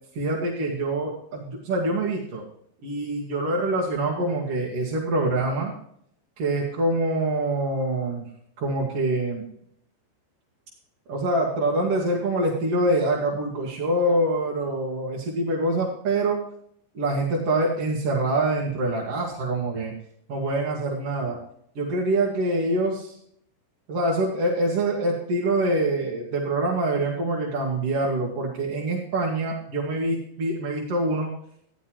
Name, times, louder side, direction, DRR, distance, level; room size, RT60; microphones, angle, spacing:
voice 1, 0.2-2.4 2.8-5.7 6.4-8.3 8.6-9.5 11.1-16.4 16.9-19.9 20.3-21.4 21.8-23.2 23.9-31.3, right 2 dB, 50° right, -3 dB, 2.0 m, -25 dB
14.5 x 11.0 x 3.0 m, 0.68 s
omnidirectional pair, 5.1 m